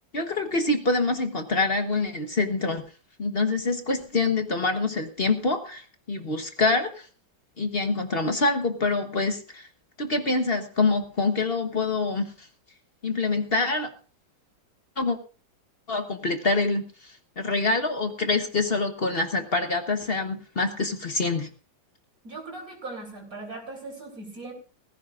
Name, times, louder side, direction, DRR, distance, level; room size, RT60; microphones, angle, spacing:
voice 1, 0.1-2.8 3.2-7.1 7.6-9.7 10.0-12.5 13.0-13.9 15.0-15.2 15.9-21.5, left 3 dB, 35° left, 6 dB, 1.1 m, -26 dB
voice 2, 22.2-24.5, right 2 dB, 45° right, 0 dB, 4.2 m, -39 dB
19.0 x 15.5 x 2.5 m, 0.37 s
omnidirectional pair, 2.1 m